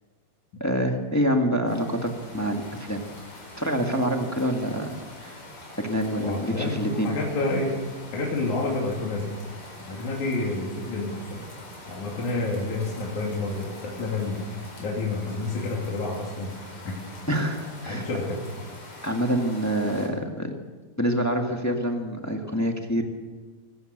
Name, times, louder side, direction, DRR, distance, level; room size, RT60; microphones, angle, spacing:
voice 1, 0.6-3.0 3.6-4.9 5.2-5.4 5.8-7.1 17.3-18.1 19.0-20.5 21.0-23.0, equal, 10° left, 3 dB, 0.9 m, -26 dB
sound 1, 1.7-20.1, left 1 dB, 45° left, 6.0 m, -44 dB
voice 2, 6.2-7.8 8.1-9.3 9.9-11.4 11.9-14.5 14.8-16.5 16.8-16.9 17.9-18.4, left 2 dB, 65° left, -3 dB, 4.2 m, -29 dB
24.5 x 16.5 x 6.7 m, 1.3 s
omnidirectional pair, 3.8 m